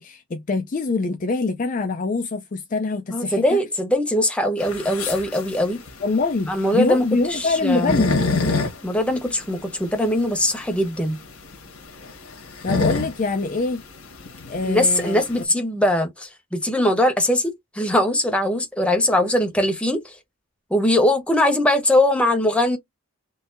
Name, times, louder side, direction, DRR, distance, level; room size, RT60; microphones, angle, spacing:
voice 1, 0.0-3.6 6.0-8.2 12.6-13.8 14.5-15.2, left 3 dB, 35° left, 0.4 m, -24 dB
voice 2, 3.1-5.8 6.5-7.0 7.3-8.0 8.8-11.2 14.6-20.2 20.7-22.8, left 1 dB, 5° left, 0.8 m, -21 dB
sound 1, 4.6-15.4, left 3 dB, 80° left, 1.4 m, -28 dB
3.7 x 2.7 x 2.6 m
head